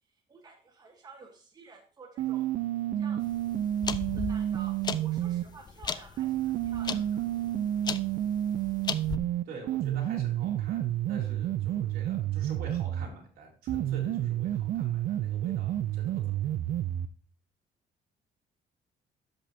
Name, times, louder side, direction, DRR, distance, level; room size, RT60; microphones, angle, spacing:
voice 1, 0.3-2.5 3.0-3.2 4.1-7.2, right 4 dB, 25° right, 2 dB, 1.3 m, -51 dB
sound 1, 2.2-5.5 6.2-13.1 13.7-17.1, right 12 dB, 55° right, 0.5 m, -30 dB
sound 2, 3.2-9.2, left 6 dB, 25° left, 0.4 m, -37 dB
voice 2, 9.4-16.5, right 4 dB, 75° right, 0 dB, 3.3 m, -46 dB
13.0 x 5.2 x 2.8 m, 0.40 s
cardioid pair, 150°, 16 cm